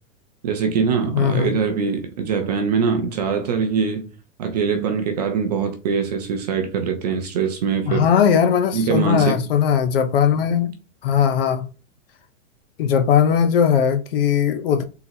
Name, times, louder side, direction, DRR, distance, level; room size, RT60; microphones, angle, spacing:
voice 1, 0.4-4.1 4.4-8.1 8.7-9.4, right 6 dB, 30° right, 0.5 m, -22 dB
voice 2, 1.1-1.5 7.9-10.8 11.0-11.6 12.8-14.8, left 8 dB, 45° left, 0.7 m, -19 dB
3.8 x 2.8 x 4.2 m
supercardioid pair, 175°, 40 cm